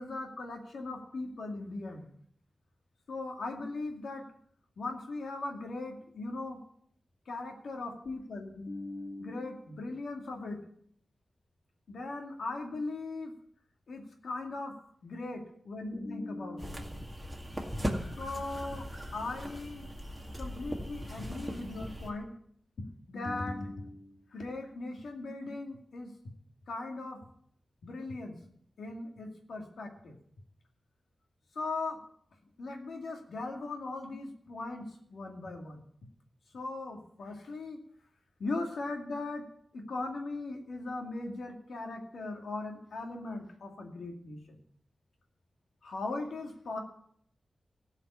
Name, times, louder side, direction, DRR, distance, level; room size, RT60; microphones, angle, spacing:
voice 1, 0.0-2.1 3.1-4.2 4.8-6.6 7.3-10.6 11.9-13.3 13.9-14.7 15.0-17.1 18.2-19.9 20.4-22.3 23.1-26.1 26.7-27.2 27.8-28.4 28.8-30.2 31.5-32.0 32.6-35.9 36.5-37.8 38.4-39.4 39.7-44.6 45.8-46.8, left 2 dB, 80° left, 3 dB, 2.3 m, -39 dB
sound 1, 16.6-22.1, equal, 5° right, 2.0 m, -39 dB
16.5 x 5.7 x 8.4 m, 0.65 s
wide cardioid pair, 145°, 0 cm